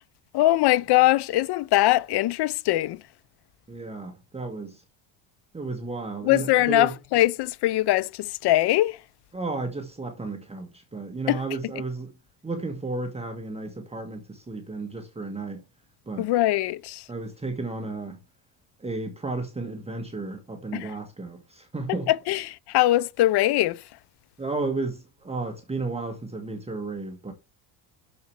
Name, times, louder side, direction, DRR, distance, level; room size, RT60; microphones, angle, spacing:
voice 1, 0.3-3.0 6.2-9.0 11.3-11.4 16.2-17.1 20.7-20.9 22.1-23.8, left 16 dB, 60° left, 0.7 m, -22 dB
voice 2, 3.7-4.8 5.5-6.9 9.3-12.1 12.4-15.6 16.1-16.3 17.1-18.2 18.8-22.1 24.4-27.3, right 3 dB, 15° right, 1.4 m, -33 dB
6.7 x 6.7 x 4.4 m
cardioid pair, 115°, 45 cm